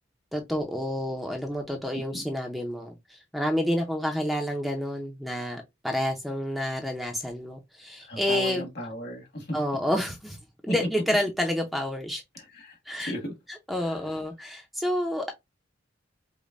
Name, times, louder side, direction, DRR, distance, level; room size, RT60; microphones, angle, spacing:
voice 1, 0.3-8.7 9.5-10.4 10.6-12.2 12.9-13.1 13.5-15.3, equal, ahead, 0.5 m, -29 dB
voice 2, 8.1-9.6 10.7-10.8 12.5-13.3, equal, 55° left, 1.5 m, -35 dB
5.1 x 2.1 x 2.4 m
head